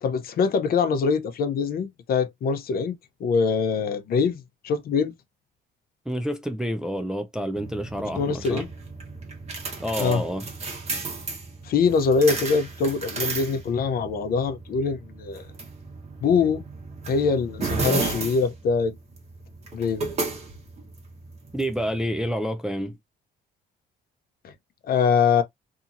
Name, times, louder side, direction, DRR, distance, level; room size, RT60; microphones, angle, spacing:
voice 1, 0.0-2.9 3.2-5.1 8.2-8.7 10.0-10.2 11.6-15.5 16.2-16.6 17.1-18.9 19.7-20.1 24.4-24.5 24.9-25.4, left 5 dB, 55° left, 0.6 m, -23 dB
voice 2, 6.1-8.7 9.8-10.4 21.5-23.0, equal, 5° right, 0.4 m, -28 dB
sound 1, 7.6-22.3, right 4 dB, 35° right, 1.1 m, -34 dB
2.8 x 2.7 x 2.4 m
cardioid pair, 130°, 19 cm